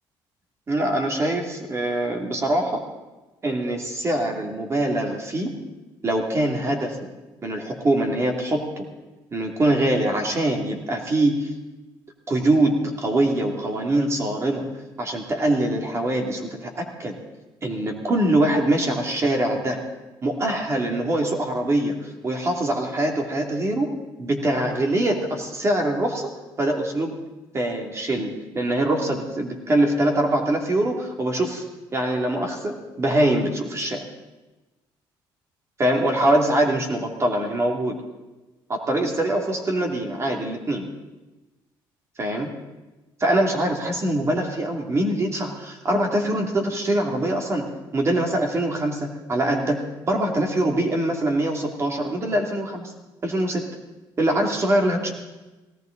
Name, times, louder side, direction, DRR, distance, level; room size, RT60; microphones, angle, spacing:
voice 1, 0.7-2.8 3.4-5.6 6.0-7.0 7.4-8.8 9.3-11.5 12.3-14.6 15.0-17.2 17.6-19.8 20.2-22.0 22.2-23.9 24.2-26.3 26.6-27.2 27.5-31.6 31.9-34.0 35.8-38.0 38.7-40.9 42.2-42.5 43.2-52.9 53.2-53.7 54.2-55.1, right 1 dB, 30° right, 2 dB, 2.6 m, -23 dB
18.5 x 17.5 x 3.9 m, 1.1 s
cardioid pair, 100°, 9 cm